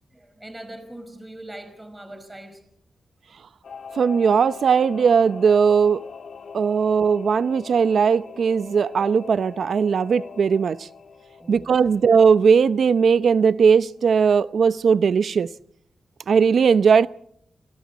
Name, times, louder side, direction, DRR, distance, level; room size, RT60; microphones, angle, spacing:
voice 1, 0.1-2.6 11.4-12.0, right 1 dB, 15° right, 5.2 m, -41 dB
Singing / Musical instrument, 3.6-13.7 14.0-14.1, left 5 dB, 70° left, 1.6 m, -42 dB
voice 2, 3.9-6.0 6.5-10.9 11.5-15.5 16.3-17.1, right 6 dB, 70° right, 0.7 m, -18 dB
29.0 x 22.5 x 4.2 m
cardioid pair, 75°, 0 cm